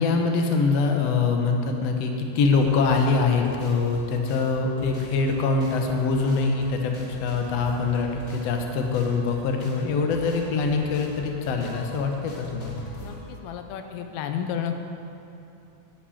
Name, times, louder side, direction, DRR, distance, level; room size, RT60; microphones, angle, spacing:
voice 1, 0.0-12.8, left 4 dB, 70° left, 3 dB, 1.5 m, -24 dB
sound 1, 2.6-13.3, right 1 dB, 35° left, 3.4 m, -43 dB
voice 2, 13.0-14.8, left 8 dB, 85° left, 6 dB, 2.7 m, -32 dB
12.5 x 5.5 x 8.5 m, 2.8 s
omnidirectional pair, 4.2 m